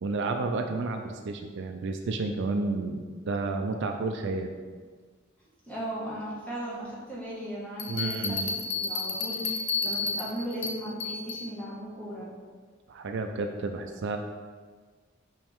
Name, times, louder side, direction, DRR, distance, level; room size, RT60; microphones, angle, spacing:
voice 1, 0.0-4.5 7.9-8.6 12.9-14.2, right 3 dB, 60° right, 5 dB, 0.4 m, -31 dB
voice 2, 5.7-8.4 8.7-12.3, right 1 dB, 5° left, -8 dB, 1.7 m, -37 dB
Bell, 7.8-11.5, left 4 dB, 65° left, 0.7 m, -31 dB
5.5 x 5.4 x 3.5 m, 1.5 s
head